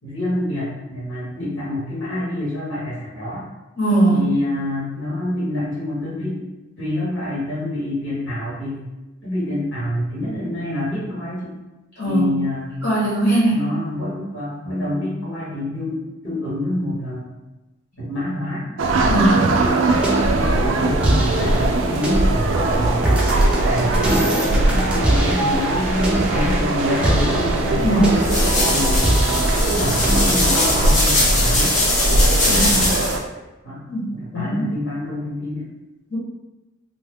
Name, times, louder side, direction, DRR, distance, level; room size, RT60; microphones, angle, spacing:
voice 1, 0.0-3.5 4.1-6.4 6.8-8.8 9.2-11.5 12.0-12.7 13.5-17.3 18.0-18.7 19.1-19.8 20.4-23.1 23.7-28.0 28.7-29.2 29.6-31.8 32.4-32.9 33.6-33.8 34.1-35.7, left 1 dB, 85° left, -9 dB, 1.4 m, -27 dB
voice 2, 3.8-4.2 12.0-12.3 12.8-13.6 19.0-19.4 27.8-28.2 32.4-32.9 33.9-34.0 34.3-34.7 36.1-36.2, right 1 dB, 65° left, -9 dB, 1.1 m, -19 dB
sound 1, 18.8-33.2, right 2 dB, 70° right, 0.3 m, -21 dB
sound 2, 19.8-30.9, right 1 dB, 5° right, 0.4 m, -24 dB
sound 3, 27.8-33.2, left 1 dB, 40° left, 0.6 m, -20 dB
2.7 x 2.2 x 3.4 m, 1.0 s
head